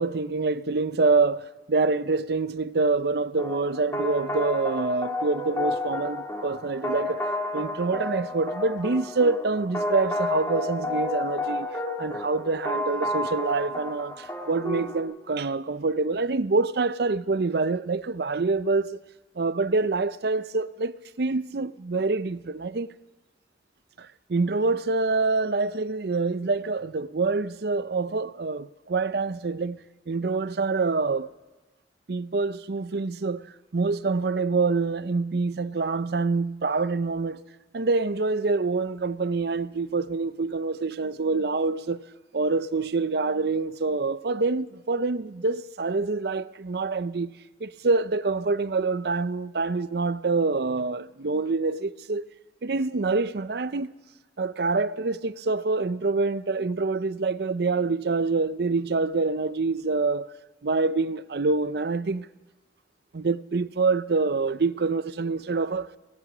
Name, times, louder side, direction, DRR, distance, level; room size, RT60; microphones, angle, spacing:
voice 1, 0.0-7.3 7.5-11.7 12.0-19.0 19.4-22.9 24.0-31.3 32.1-37.4 37.7-42.0 42.3-52.3 52.6-53.9 54.4-60.3 60.6-62.3 63.1-65.9, right 3 dB, 65° right, 0.6 m, -26 dB
sound 1, 3.4-15.0, left 2 dB, 15° left, 2.4 m, -31 dB
24.5 x 17.5 x 6.1 m
head